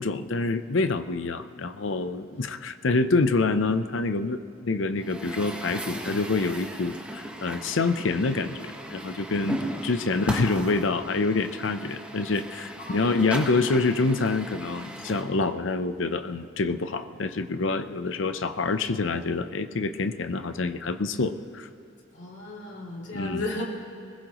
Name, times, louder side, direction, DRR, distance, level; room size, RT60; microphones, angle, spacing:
voice 1, 0.0-21.7 23.1-23.4, left 3 dB, 90° left, 10 dB, 0.7 m, -26 dB
Truck, 5.0-15.2, right 1 dB, 5° right, 1.2 m, -37 dB
voice 2, 10.1-10.4 12.8-13.4 22.1-23.6, left 2 dB, 75° left, -2 dB, 2.8 m, -35 dB
21.0 x 20.0 x 3.1 m, 2.5 s
head